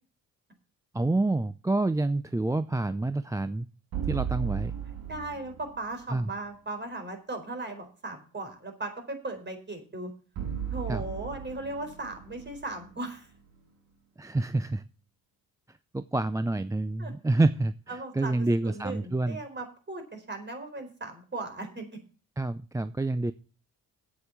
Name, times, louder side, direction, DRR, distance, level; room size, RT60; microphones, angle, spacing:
voice 1, 0.9-3.7 4.1-4.7 6.1-6.3 10.9-11.0 14.2-14.8 15.9-19.4 22.4-23.3, right 2 dB, 10° right, 13 dB, 0.4 m, -28 dB
sound 1, 3.9-6.1 10.4-13.6, right 9 dB, 85° right, 3.4 m, -36 dB
voice 2, 5.1-10.1 10.7-13.3 17.0-17.1 17.9-22.0, right 2 dB, 30° right, 6 dB, 4.3 m, -37 dB
8.5 x 7.7 x 7.3 m, 0.35 s
cardioid pair, 85°, 35 cm